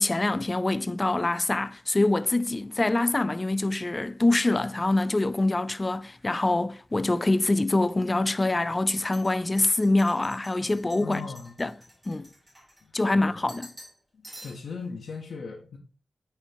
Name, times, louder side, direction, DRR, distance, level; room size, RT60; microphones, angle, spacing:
voice 1, 0.0-11.2 11.6-11.7 12.1-12.3 12.9-13.7, left 2 dB, 20° left, 0.3 m, -25 dB
sound 1, 2.4-6.4 6.7-7.4 7.8-7.9 8.7-13.1 13.5-14.0 14.2-14.8, equal, 20° right, 2.1 m, -51 dB
voice 2, 11.0-11.5 12.8-13.3 14.1-15.8, left 5 dB, 80° left, 0.8 m, -39 dB
8.9 x 4.3 x 2.6 m
wide cardioid pair, 135°, 0 cm